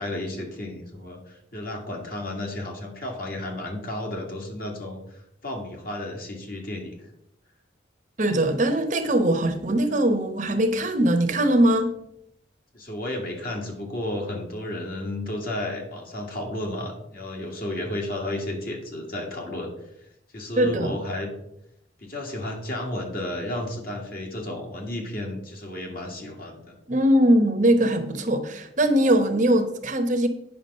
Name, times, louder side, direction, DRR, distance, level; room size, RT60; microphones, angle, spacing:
voice 1, 0.0-7.0 12.7-19.7 20.3-21.3 22.0-26.7, left 1 dB, 50° left, 1 dB, 2.1 m, -32 dB
voice 2, 8.2-12.0 20.6-20.9 26.9-30.3, right 1 dB, 40° right, 7 dB, 0.9 m, -21 dB
9.2 x 6.0 x 5.4 m, 0.78 s
head